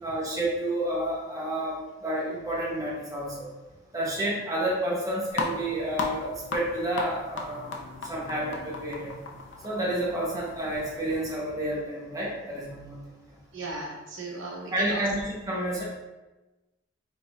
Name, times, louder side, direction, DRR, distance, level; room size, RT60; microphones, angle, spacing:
voice 1, 0.0-1.8 2.0-3.5 3.9-7.7 8.1-9.1 9.6-13.0 14.7-15.8, right 1 dB, 20° right, -5 dB, 1.1 m, -30 dB
sound 1, 5.3-11.4, left 3 dB, 65° left, 0.7 m, -37 dB
voice 2, 13.5-15.1, right 2 dB, 70° right, -3 dB, 1.0 m, -36 dB
5.2 x 3.8 x 2.6 m, 1.1 s
head